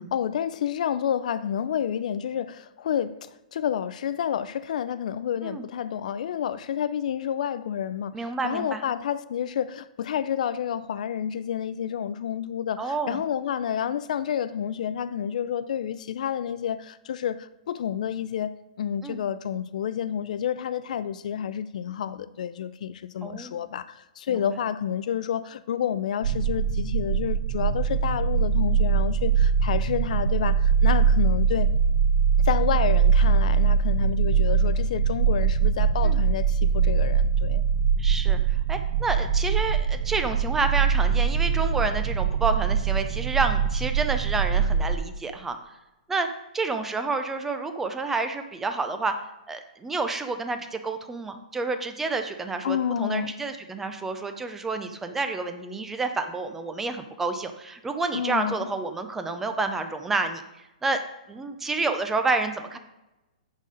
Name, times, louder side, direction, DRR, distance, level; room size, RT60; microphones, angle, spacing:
voice 1, 0.0-18.5 18.8-31.7 32.4-37.6 52.6-53.3 58.1-58.7, left 9 dB, 60° left, 0.4 m, -29 dB
voice 2, 8.1-8.8 12.8-13.2 19.0-19.2 23.2-23.5 24.3-24.4 36.0-36.2 38.0-45.6 46.1-46.3 46.5-49.1 49.5-60.4 60.8-61.0 61.3-62.8, right 3 dB, 5° right, 0.5 m, -29 dB
sound 1, 26.2-45.0, right 6 dB, 60° right, 0.5 m, -22 dB
9.8 x 4.2 x 5.0 m
hypercardioid pair, 165°, 5 cm